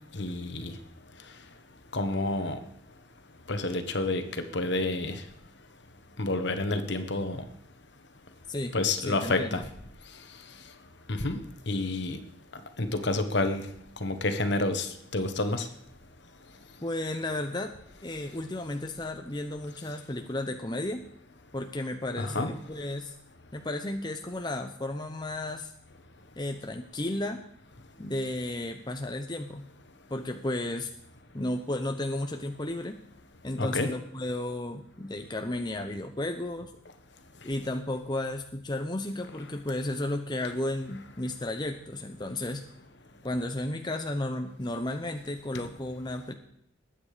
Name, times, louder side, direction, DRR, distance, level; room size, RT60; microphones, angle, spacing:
voice 1, 0.1-0.7 1.9-2.6 3.5-4.2 4.5-5.2 6.2-7.4 8.7-9.6 11.1-11.4 11.7-12.2 12.8-13.6 14.0-15.7 22.2-22.5 33.6-33.9 45.5-45.6, left 2 dB, 60° left, 8 dB, 1.4 m, -29 dB
voice 2, 8.5-9.6 16.8-17.7 18.0-21.0 21.5-23.1 23.5-25.7 26.4-27.4 28.0-29.7 30.1-30.9 31.3-33.0 33.4-36.7 37.4-42.6 43.2-46.3, left 1 dB, 20° left, 5 dB, 0.8 m, -33 dB
20.0 x 8.9 x 5.1 m, 0.73 s
head